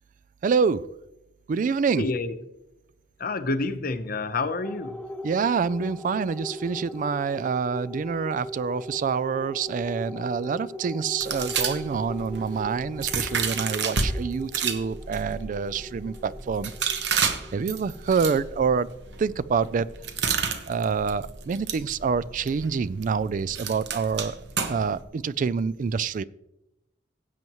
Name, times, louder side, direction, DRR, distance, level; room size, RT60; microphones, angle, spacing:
voice 1, 0.4-0.9 1.5-2.0 5.2-18.9 19.2-19.9 20.7-24.4 24.7-26.2, right 5 dB, 45° right, 17 dB, 0.3 m, -27 dB
voice 2, 1.9-2.4 3.2-5.0, left 3 dB, 55° left, 11 dB, 0.8 m, -28 dB
sound 1, 4.6-19.4, left 1 dB, 5° left, 1.0 m, -40 dB
sound 2, 11.2-14.1 14.5-25.0, right 6 dB, 70° right, 1.1 m, -31 dB
16.0 x 7.7 x 3.0 m, 0.87 s
head